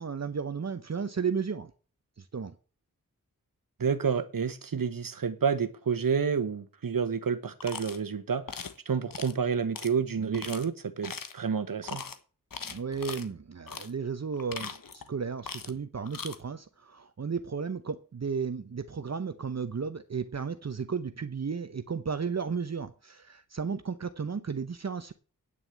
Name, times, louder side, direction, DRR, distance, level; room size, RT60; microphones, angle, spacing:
voice 1, 0.0-1.7 2.3-2.5 10.2-10.4 12.6-25.1, right 5 dB, 50° right, 0.8 m, -34 dB
voice 2, 3.8-12.0, right 6 dB, 80° right, 1.2 m, -29 dB
sound 1, 7.6-8.0 8.5-8.8 9.1-9.3 9.7-9.9 10.3-10.6 11.0-11.4 11.8-12.2 12.5-13.3 13.7-13.9 14.3-15.1 15.4-15.8 16.1-16.4, left 5 dB, 80° left, 1.2 m, -40 dB
9.4 x 6.2 x 8.5 m
wide cardioid pair, 80°, 33 cm